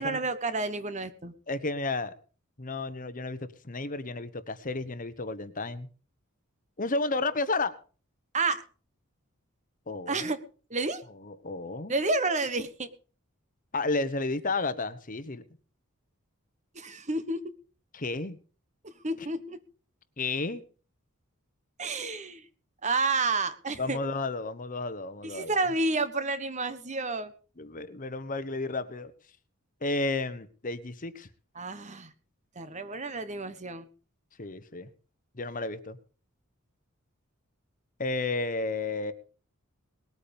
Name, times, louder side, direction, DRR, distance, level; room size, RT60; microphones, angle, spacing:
voice 1, 0.0-1.3 8.3-8.6 10.1-10.4 10.7-11.0 11.9-12.9 16.7-17.4 18.8-19.6 21.8-22.4 22.8-24.0 25.2-27.3 31.5-32.1 32.6-33.9, right 3 dB, 35° right, 12 dB, 1.2 m, -30 dB
voice 2, 1.5-2.1 2.6-3.4 3.6-5.9 6.8-7.7 9.9-10.3 11.2-12.0 13.7-15.4 17.9-18.4 20.2-20.6 23.8-25.5 27.6-29.1 29.8-31.3 34.4-34.9 35.3-36.0 38.0-39.1, left 3 dB, 40° left, 13 dB, 1.2 m, -32 dB
20.0 x 8.8 x 5.3 m, 0.39 s
head